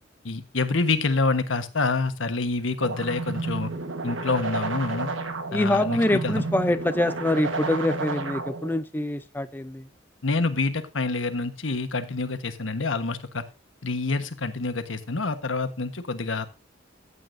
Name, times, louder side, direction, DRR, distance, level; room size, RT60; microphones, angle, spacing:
voice 1, 0.2-3.7 4.0-5.1 5.5-6.4 10.2-13.4 13.8-16.5, left 3 dB, 85° left, 9 dB, 1.3 m, -27 dB
sound 1, 2.8-8.8, right 3 dB, 90° right, 1.5 m, -31 dB
voice 2, 5.5-9.8, left 1 dB, 10° left, 10 dB, 0.5 m, -25 dB
14.5 x 8.4 x 2.7 m, 0.28 s
head